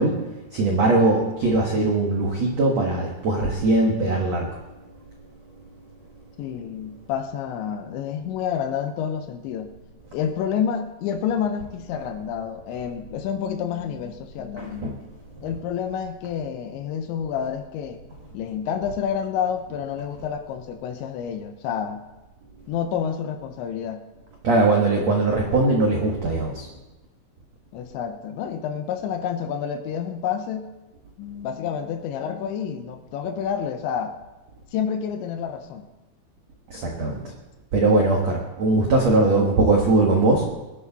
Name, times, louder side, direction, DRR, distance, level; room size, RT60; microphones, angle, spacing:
voice 1, 0.0-4.6 14.6-15.0 24.4-26.7 36.7-37.3 37.7-40.4, right 2 dB, 80° right, 0 dB, 1.5 m, -21 dB
voice 2, 6.4-9.7 10.1-15.0 15.4-18.0 18.3-22.0 22.7-24.0 27.7-30.7 31.2-34.2 34.7-35.8, left 8 dB, 75° left, 7 dB, 3.0 m, -29 dB
22.0 x 11.0 x 4.1 m, 1.1 s
omnidirectional pair, 5.6 m